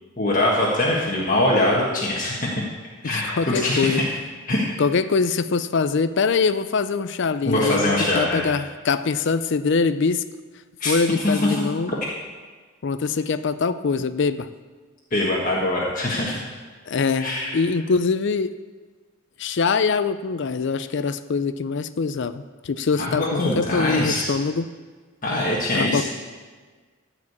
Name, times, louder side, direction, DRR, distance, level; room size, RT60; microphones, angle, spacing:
voice 1, 0.2-2.5 3.0-4.0 4.5-4.7 7.5-8.5 10.8-10.9 11.2-11.5 15.1-16.4 17.2-17.6 23.0-24.3 25.2-26.0, left 1 dB, 40° left, -4 dB, 1.5 m, -22 dB
voice 2, 3.0-4.1 4.8-10.2 10.8-11.9 12.8-14.5 16.9-18.5 19.4-24.7 25.7-26.0, left 4 dB, 55° left, 12 dB, 0.5 m, -23 dB
14.0 x 5.0 x 8.3 m, 1.5 s
head